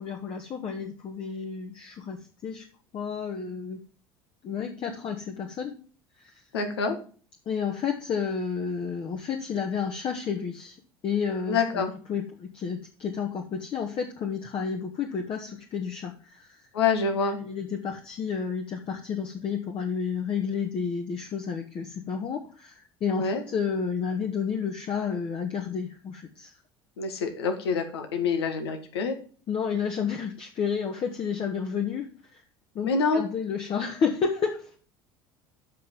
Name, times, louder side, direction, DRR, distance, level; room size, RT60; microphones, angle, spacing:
voice 1, 0.0-2.6 2.9-3.8 4.4-5.8 6.2-6.4 7.4-10.8 11.0-11.8 12.1-16.6 17.2-26.5 29.5-32.1 32.3-32.4 32.7-34.7, left 6 dB, 45° left, 2 dB, 1.4 m, -31 dB
voice 2, 6.5-7.0 11.5-11.9 16.7-17.4 23.1-23.4 27.0-29.2 32.8-33.2, left 5 dB, 85° left, 6 dB, 1.6 m, -26 dB
7.6 x 5.6 x 7.4 m, 0.41 s
hypercardioid pair, 70°, 13 cm